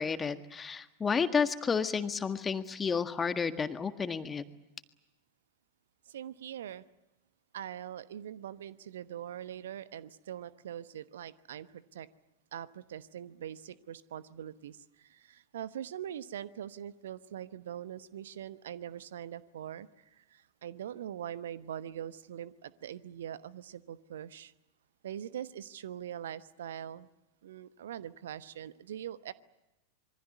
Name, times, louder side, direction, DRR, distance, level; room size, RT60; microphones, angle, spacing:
voice 1, 0.0-4.4, left 5 dB, 15° left, 10 dB, 1.7 m, -31 dB
voice 2, 6.1-6.8 7.5-12.1 12.5-24.5 25.0-27.1 27.4-29.3, right 10 dB, 60° right, 16 dB, 1.0 m, -42 dB
26.5 x 24.0 x 8.3 m, 0.97 s
figure-of-eight pair, 90°, 0 cm